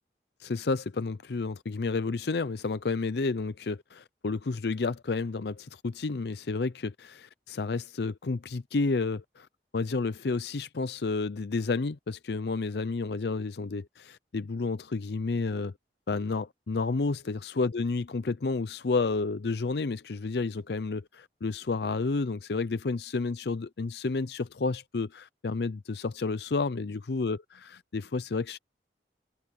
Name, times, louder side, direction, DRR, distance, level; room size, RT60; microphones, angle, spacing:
voice 1, 0.4-9.5 9.7-15.7 16.1-28.6, left 3 dB, 70° left, 0.5 m, -31 dB
head